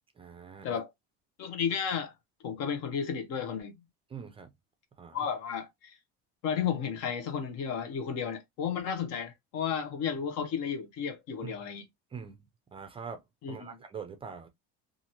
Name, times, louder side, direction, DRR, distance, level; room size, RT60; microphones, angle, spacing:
voice 1, 0.2-0.8 4.1-4.5 5.0-5.2 11.4-11.6 12.1-12.4 12.7-14.5, right 6 dB, 20° right, 0.4 m, -43 dB
voice 2, 1.4-2.1 2.4-3.8 5.1-6.0 6.4-11.8 13.4-13.8, left 7 dB, 60° left, 0.8 m, -33 dB
2.8 x 2.5 x 2.7 m
cardioid pair, 140°, 29 cm